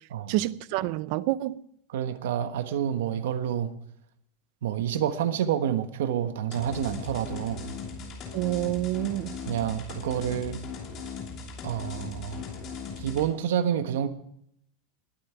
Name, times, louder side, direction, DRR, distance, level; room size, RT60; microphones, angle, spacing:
voice 1, 0.3-1.6 8.3-9.4, right 16 dB, 45° right, 0.5 m, -28 dB
voice 2, 1.9-3.7 4.6-7.7 9.4-10.6 11.6-12.4 13.0-14.1, right 9 dB, 85° right, 1.3 m, -28 dB
sound 1, 6.5-13.3, left 5 dB, 25° left, 2.9 m, -38 dB
20.0 x 8.9 x 4.6 m
supercardioid pair, 180°, 0 cm